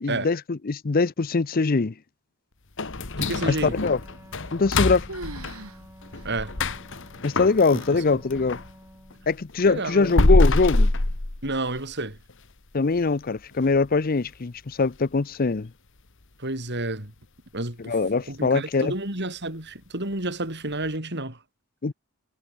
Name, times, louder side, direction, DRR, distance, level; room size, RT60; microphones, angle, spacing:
voice 1, 0.0-1.9 3.4-4.0 4.5-5.1 7.2-8.6 9.3-10.9 12.7-15.7 17.8-18.9 21.8-21.9, left 4 dB, 40° left, 0.6 m, -23 dB
sound 1, 2.8-8.7 9.1-11.9 12.3-12.4 12.9-13.0 13.5-13.8 14.2-14.3 14.8-14.9, left 2 dB, 60° left, 1.8 m, -25 dB
voice 2, 3.2-3.8 6.2-6.5 7.7-7.8 9.7-10.1 11.4-12.2 16.4-17.1 17.5-18.0 18.3-21.4, right 2 dB, 50° right, 6.7 m, -30 dB
Wind instrument woodwind instrument, 3.3-9.4, equal, 10° right, 7.2 m, -50 dB
sound 2, 4.3-4.8 5.1-5.8 6.1-6.3 6.9-7.0 7.8-8.1, right 2 dB, 85° right, 3.9 m, -40 dB
head